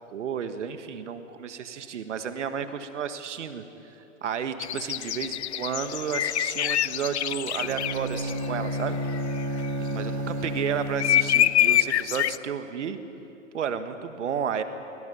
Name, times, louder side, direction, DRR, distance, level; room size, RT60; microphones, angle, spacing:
voice 1, 0.1-9.0 9.8-13.0 13.5-14.6, right 7 dB, 60° right, 10 dB, 1.7 m, -32 dB
sound 1, 4.6-8.8 9.1-9.7 11.0-12.4, left 12 dB, 55° left, 0.5 m, -25 dB
Bowed string instrument, 7.5-11.6, equal, 25° right, 2.3 m, -31 dB
27.5 x 22.5 x 5.7 m, 2.9 s
figure-of-eight pair, 120°, 40 cm